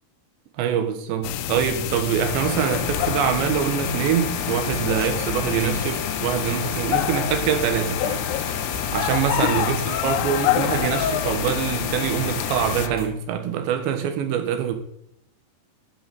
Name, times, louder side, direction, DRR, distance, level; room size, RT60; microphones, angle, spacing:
voice 1, 0.6-8.3 8.9-14.8, right 9 dB, 75° right, 3.5 m, -24 dB
sound 1, 1.2-12.9, left 14 dB, 90° left, 2.3 m, -27 dB
sound 2, 1.6-13.0, left 3 dB, 5° right, 1.9 m, -39 dB
sound 3, 2.2-12.9, left 4 dB, 40° left, 3.3 m, -33 dB
11.5 x 7.1 x 7.1 m
omnidirectional pair, 5.3 m